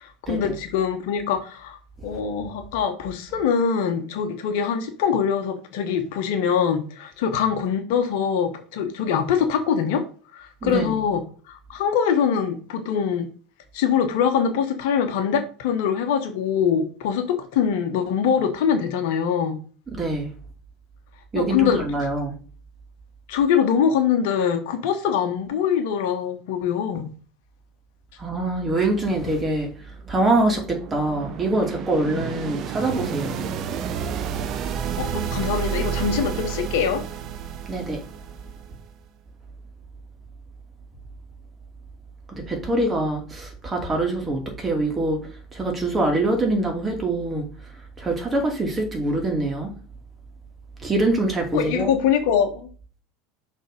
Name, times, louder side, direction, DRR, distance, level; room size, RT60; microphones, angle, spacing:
voice 1, 0.0-10.1 10.3-13.3 13.7-19.6 21.3-21.8 23.3-27.1 35.0-37.0 51.5-52.7, left 7 dB, 60° left, 1.1 m, -23 dB
voice 2, 10.6-10.9 19.9-20.3 21.3-22.3 28.2-29.7 30.1-33.4 37.7-38.0 42.3-45.2 45.5-47.5 48.0-49.7 50.8-51.9, right 2 dB, 20° right, 2.5 m, -24 dB
sound 1, 30.0-38.9, right 8 dB, 45° right, 0.7 m, -30 dB
6.4 x 3.6 x 5.2 m
figure-of-eight pair, 75°, 0 cm